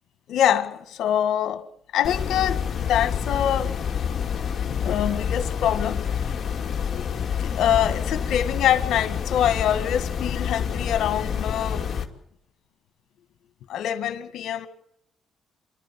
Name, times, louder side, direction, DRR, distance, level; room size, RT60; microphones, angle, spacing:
voice 1, 0.3-1.6 1.9-3.8 4.3-6.3 6.9-11.9 13.7-14.7, left 10 dB, 80° left, 1.9 m, -25 dB
sound 1, 2.0-12.1, left 7 dB, 50° left, 2.8 m, -28 dB
27.5 x 12.5 x 8.7 m
cardioid pair, 80°, 0 cm